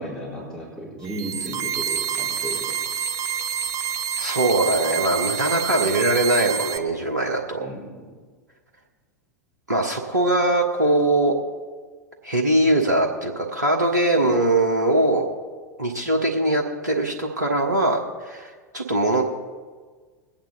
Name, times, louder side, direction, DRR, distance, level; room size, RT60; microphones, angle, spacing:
voice 1, 0.0-2.8 3.2-3.3 7.6-8.0, equal, 5° left, -6 dB, 4.2 m, -35 dB
sound 1, 1.0-6.8, right 7 dB, 30° right, 0.8 m, -27 dB
voice 2, 4.2-7.7 9.7-11.3 12.2-15.3 15.8-19.2, right 1 dB, 80° right, 1 dB, 1.2 m, -21 dB
21.5 x 8.8 x 3.9 m, 1.5 s
figure-of-eight pair, 90°, 9 cm